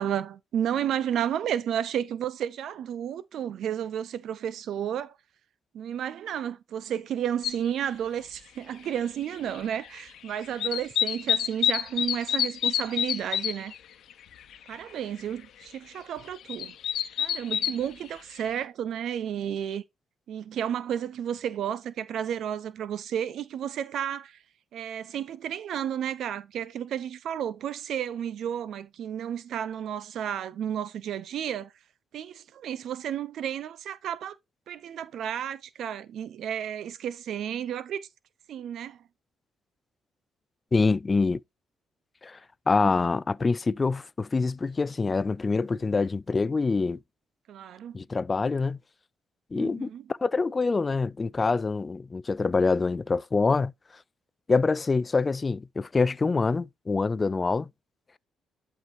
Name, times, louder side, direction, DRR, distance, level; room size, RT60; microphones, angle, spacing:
voice 1, 0.0-5.2 5.7-13.7 14.7-16.7 17.2-19.8 20.3-24.4 24.7-31.7 32.1-34.4 34.7-38.0 38.5-39.0 47.5-48.0 49.5-50.0, right 9 dB, 70° right, 0.6 m, -32 dB
sound 1, 7.4-7.5 9.0-9.1 9.3-10.2 10.4-13.8 14.1-14.2 14.4-14.8 15.2-15.3 16.2-17.9 18.5-18.6, left 10 dB, 70° left, 0.9 m, -28 dB
voice 2, 40.7-41.4 42.2-42.4 42.7-47.0 47.9-48.8 49.5-53.7 54.5-57.7, left 4 dB, 30° left, 0.4 m, -25 dB
11.5 x 4.5 x 2.6 m
cardioid pair, 90°, 0 cm